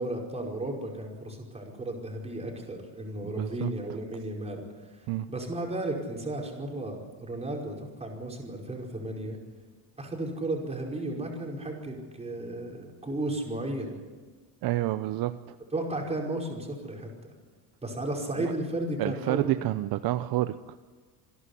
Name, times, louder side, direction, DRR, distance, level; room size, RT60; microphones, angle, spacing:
voice 1, 0.0-4.6 4.9-9.4 10.0-14.0 15.7-17.3 17.8-19.5, right 1 dB, 15° right, 0 dB, 5.3 m, -34 dB
voice 2, 3.2-3.7 5.1-5.3 14.6-15.6 18.4-18.5 19.0-20.8, right 15 dB, 60° right, 12 dB, 0.8 m, -29 dB
27.5 x 11.5 x 9.9 m, 1.4 s
cardioid pair, 135°, 41 cm